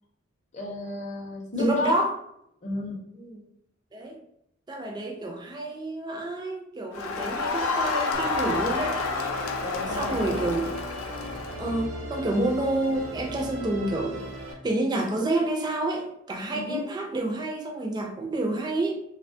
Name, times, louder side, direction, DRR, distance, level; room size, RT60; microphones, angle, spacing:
voice 1, 0.5-1.9 2.6-3.0 9.6-10.4 16.5-16.9, left 2 dB, 35° left, -2 dB, 0.5 m, -33 dB
voice 2, 1.6-2.1 3.2-3.4 3.9-4.2 4.7-9.0 10.0-10.7 11.6-18.9, right 2 dB, 20° right, 1 dB, 0.3 m, -28 dB
Crowd, 6.9-11.7, left 4 dB, 90° left, 0.4 m, -29 dB
Musical instrument, 8.1-14.5, right 1 dB, 70° right, 0.5 m, -38 dB
3.0 x 2.1 x 2.6 m, 0.75 s
head